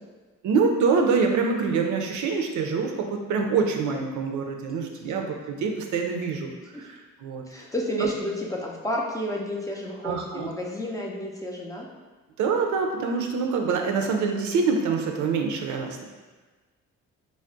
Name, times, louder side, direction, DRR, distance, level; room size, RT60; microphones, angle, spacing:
voice 1, 0.4-7.4 8.0-8.1 10.0-10.5 12.4-16.0, right 5 dB, 75° right, 3 dB, 0.5 m, -25 dB
voice 2, 7.5-11.9, left 1 dB, 10° left, -3 dB, 0.4 m, -31 dB
2.3 x 2.0 x 3.7 m, 1.3 s
cardioid pair, 90°, 30 cm